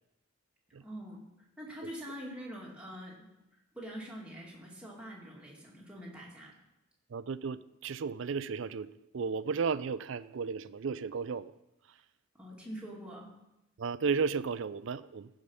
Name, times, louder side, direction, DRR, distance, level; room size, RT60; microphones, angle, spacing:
voice 1, 0.8-1.3 1.6-3.3 3.7-6.6 12.4-13.3, equal, 5° right, -4 dB, 2.1 m, -44 dB
voice 2, 7.1-11.5 13.8-15.3, right 5 dB, 65° right, 16 dB, 0.4 m, -34 dB
14.5 x 5.1 x 5.5 m, 0.91 s
head